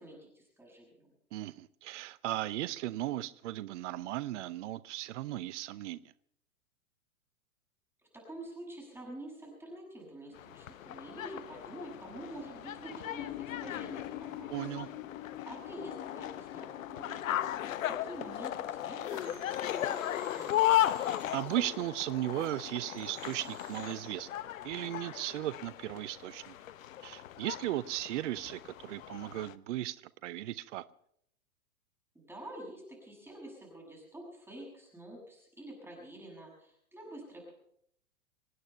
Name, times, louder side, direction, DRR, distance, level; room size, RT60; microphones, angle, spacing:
voice 1, 0.0-1.1 8.1-14.5 15.5-20.7 32.1-37.5, right 1 dB, 5° right, -3 dB, 6.9 m, -47 dB
voice 2, 1.3-6.0 14.5-14.9 21.0-24.3 24.6-26.5 27.0-30.0 30.2-30.8, right 15 dB, 55° right, 17 dB, 0.7 m, -36 dB
sound 1, 10.3-29.5, left 13 dB, 65° left, 0.9 m, -36 dB
sound 2, 13.2-19.4, left 14 dB, 35° left, 1.3 m, -46 dB
sound 3, 19.0-21.6 22.4-24.3, right 7 dB, 30° right, 3.0 m, -55 dB
26.0 x 9.2 x 5.6 m, 0.68 s
hypercardioid pair, 115°, 43 cm